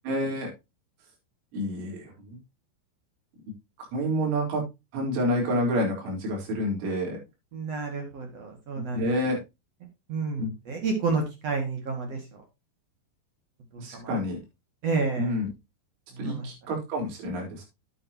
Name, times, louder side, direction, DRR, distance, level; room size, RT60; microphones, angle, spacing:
voice 1, 0.0-0.5 1.5-2.3 3.9-4.6 4.9-7.2 8.8-9.4 10.4-10.5 13.8-14.4 15.2-15.5 16.2-17.6, equal, 65° right, -1 dB, 6.4 m, -28 dB
voice 2, 7.5-9.1 10.1-12.2 13.9-14.1 14.8-15.3 16.2-16.5, right 4 dB, 50° right, 3 dB, 2.0 m, -30 dB
10.5 x 9.0 x 2.9 m, 0.24 s
omnidirectional pair, 5.9 m